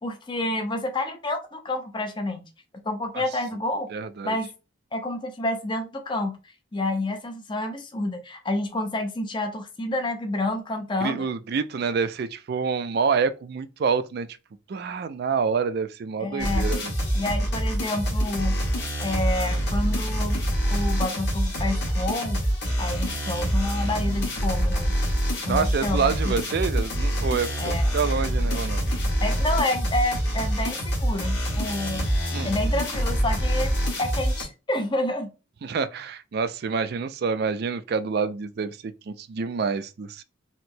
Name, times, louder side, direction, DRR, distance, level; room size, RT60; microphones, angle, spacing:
voice 1, 0.0-2.5 2.8-3.9 4.2-4.5 4.9-11.3 16.2-16.7 17.1-18.6 19.0-20.4 20.7-22.4 22.8-24.9 25.4-26.3 27.6-27.9 29.2-32.1 32.4-35.3, left 1 dB, 20° left, 0.5 m, -29 dB
voice 2, 3.9-4.4 11.0-14.3 14.7-16.9 25.5-28.9 32.3-32.5 35.6-40.2, right 5 dB, 50° right, 0.3 m, -27 dB
sound 1, 16.4-34.4, equal, 55° left, 1.3 m, -25 dB
4.3 x 2.0 x 2.6 m
head